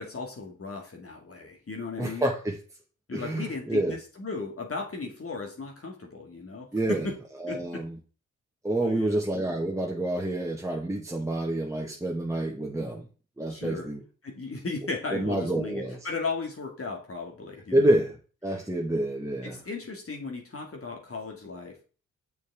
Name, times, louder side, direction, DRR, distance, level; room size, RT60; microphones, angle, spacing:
voice 1, 0.0-2.3 3.1-7.1 7.5-7.8 8.8-9.2 13.5-13.9 14.2-17.9 19.4-21.9, left 3 dB, 40° left, 2 dB, 2.3 m, -36 dB
voice 2, 2.0-2.6 3.1-4.0 6.7-7.1 7.4-8.0 8.6-13.0 13.4-14.0 15.1-16.0 17.7-19.6, right 1 dB, 10° right, 0 dB, 1.6 m, -28 dB
6.8 x 6.4 x 3.6 m, 0.37 s
hypercardioid pair, 40°, 36 cm